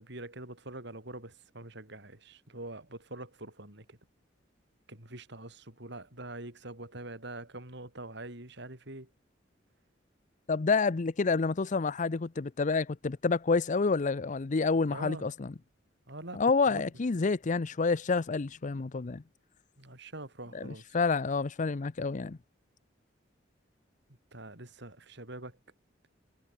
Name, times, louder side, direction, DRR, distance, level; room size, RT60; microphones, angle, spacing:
voice 1, 0.0-4.0 4.9-9.1 14.9-15.3 16.1-16.4 16.7-16.9 19.8-21.0 24.3-25.6, right 2 dB, 65° right, 6.4 m, -44 dB
voice 2, 10.5-15.5 16.4-19.2 20.5-22.4, left 4 dB, 40° left, 0.6 m, -28 dB
head